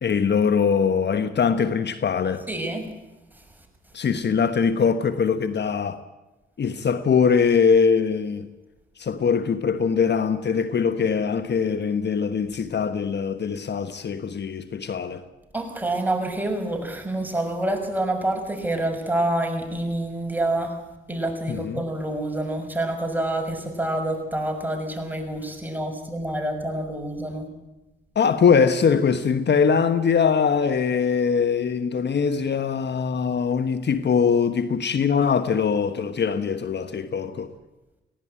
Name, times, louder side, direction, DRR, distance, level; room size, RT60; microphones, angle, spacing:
voice 1, 0.0-2.4 3.9-6.0 6.6-8.5 9.0-15.2 21.5-21.8 28.1-37.5, left 6 dB, 55° left, 1.3 m, -22 dB
voice 2, 2.5-2.9 15.5-20.8 21.1-27.5, right 1 dB, 10° right, 6.6 m, -27 dB
19.0 x 17.5 x 9.0 m
supercardioid pair, 55°, 21 cm